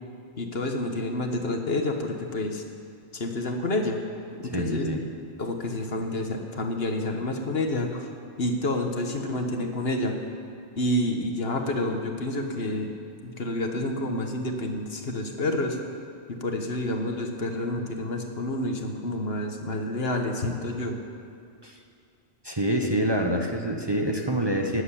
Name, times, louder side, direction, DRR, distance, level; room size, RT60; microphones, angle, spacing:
voice 1, 0.4-2.6 3.1-4.0 4.4-4.9 5.4-8.1 8.4-10.2 10.8-12.9 13.2-15.8 16.3-21.0, left 1 dB, 60° left, 4 dB, 1.5 m, -29 dB
voice 2, 4.5-5.0 21.6-21.8 22.4-24.8, right 1 dB, 25° right, 1 dB, 1.1 m, -26 dB
16.0 x 8.2 x 9.9 m, 2.4 s
omnidirectional pair, 1.2 m